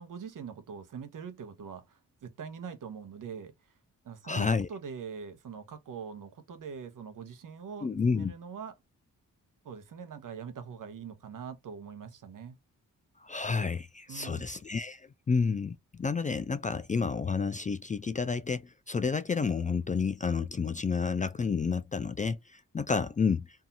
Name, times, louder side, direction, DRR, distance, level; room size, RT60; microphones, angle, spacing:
voice 1, 0.0-3.7 4.0-8.7 9.6-12.6 14.1-14.5, right 6 dB, 65° right, 0.8 m, -43 dB
voice 2, 4.2-4.7 7.8-8.3 13.2-23.5, left 5 dB, 25° left, 0.3 m, -30 dB
2.7 x 2.4 x 2.6 m
supercardioid pair, 45°, 35 cm